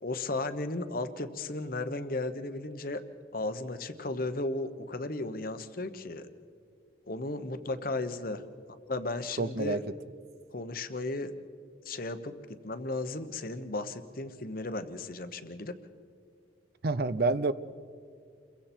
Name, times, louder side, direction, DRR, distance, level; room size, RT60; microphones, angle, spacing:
voice 1, 0.0-3.0 3.3-6.3 7.1-8.4 8.7-9.8 10.5-11.3 11.8-15.8, left 2 dB, 50° left, 10 dB, 1.1 m, -35 dB
voice 2, 9.4-9.8 16.8-17.5, right 3 dB, 55° right, 14 dB, 0.6 m, -27 dB
29.0 x 22.5 x 4.5 m, 2.2 s
head